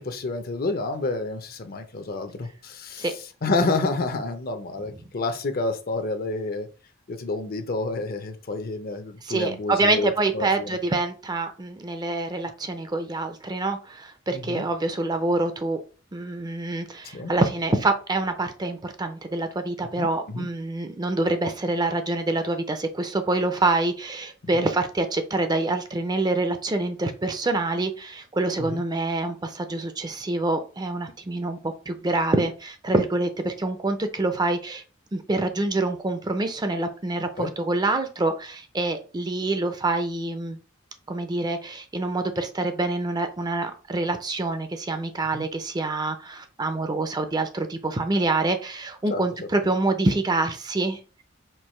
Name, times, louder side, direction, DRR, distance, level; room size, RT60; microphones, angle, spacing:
voice 1, 0.0-3.1 3.4-6.7 7.1-10.8 14.3-14.6 17.1-17.3 20.0-20.5 24.5-24.7 28.6-28.8 37.4-37.5 45.3-45.4 49.1-49.2, left 3 dB, 50° left, 0.7 m, -29 dB
voice 2, 9.2-15.8 16.1-34.8 35.1-40.6 41.1-51.0, right 2 dB, 20° right, 0.5 m, -26 dB
4.5 x 2.7 x 4.4 m
head